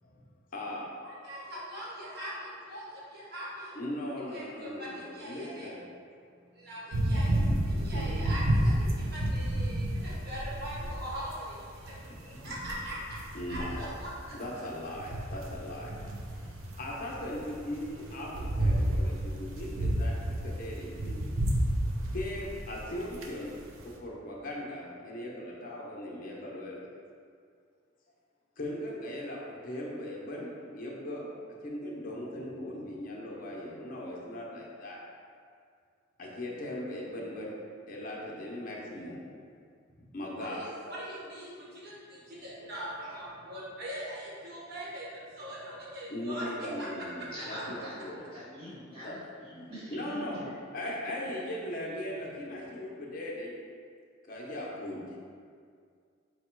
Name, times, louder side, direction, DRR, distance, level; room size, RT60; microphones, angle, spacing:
voice 1, 0.5-0.9 3.7-5.8 7.9-8.1 12.3-12.6 13.3-13.9 14.3-15.9 16.8-21.2 22.1-23.6 23.8-26.8 28.6-31.3 31.6-35.0 36.2-37.5 37.9-39.2 40.0-40.6 46.1-48.2 49.0-49.1 49.9-50.4 50.7-53.5 54.2-55.0, left 1 dB, 45° left, -3 dB, 0.8 m, -39 dB
voice 2, 1.0-3.8 4.3-5.7 6.3-13.2 13.5-14.3 40.4-47.3, equal, 55° right, -6 dB, 1.1 m, -41 dB
sound 1, 6.9-24.0, right 1 dB, 80° right, 0.5 m, -31 dB
voice 3, 47.3-50.5, equal, 25° right, -10 dB, 1.2 m, -43 dB
4.7 x 2.2 x 4.4 m, 2.2 s
head